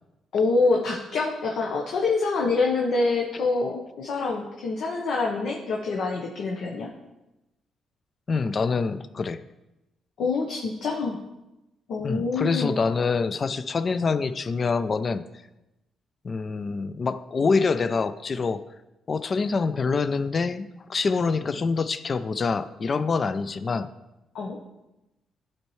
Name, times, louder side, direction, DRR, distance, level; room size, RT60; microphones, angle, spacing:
voice 1, 0.3-6.9 10.2-11.2 11.9-12.8 24.3-24.6, left 3 dB, 70° left, -1 dB, 0.9 m, -26 dB
voice 2, 8.3-9.4 12.0-15.2 16.2-18.6 19.1-23.9, left 4 dB, 40° left, 13 dB, 0.4 m, -26 dB
11.5 x 4.4 x 3.1 m, 0.97 s
cardioid pair, 90°, 0 cm